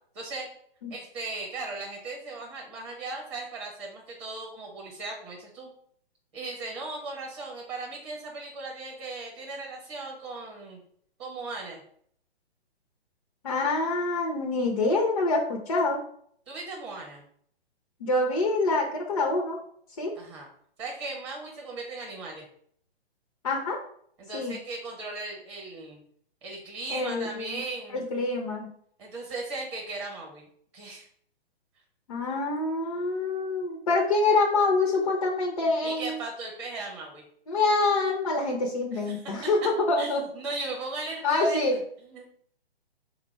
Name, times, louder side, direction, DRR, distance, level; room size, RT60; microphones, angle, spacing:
voice 1, 0.1-0.5 0.9-5.7 6.3-10.8 11.2-11.8 16.5-17.2 20.1-20.5 20.8-22.4 24.2-26.0 26.4-28.1 29.0-30.5 30.7-31.1 35.8-37.2 38.9-39.5 40.0-41.6 42.0-42.3, right 3 dB, 25° right, -1 dB, 0.9 m, -37 dB
voice 2, 13.4-16.0 18.0-19.6 20.0-20.1 23.4-23.8 24.3-24.6 26.9-27.6 27.9-28.7 32.1-36.2 37.5-40.2 41.2-41.8, left 3 dB, 35° left, 1 dB, 0.5 m, -26 dB
3.7 x 2.2 x 4.4 m, 0.63 s
figure-of-eight pair, 125°, 32 cm